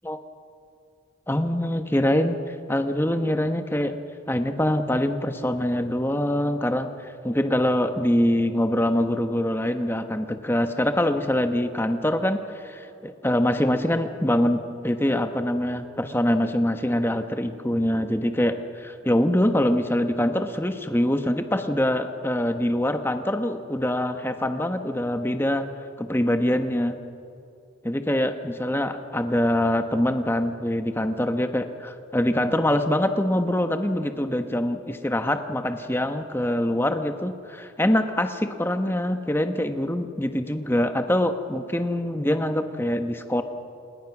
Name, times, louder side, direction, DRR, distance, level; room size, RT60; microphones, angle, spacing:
voice 1, 1.3-4.0 4.3-25.7 26.0-27.0 27.8-43.4, left 1 dB, 10° left, 7 dB, 1.1 m, -24 dB
27.5 x 20.5 x 6.1 m, 2.6 s
head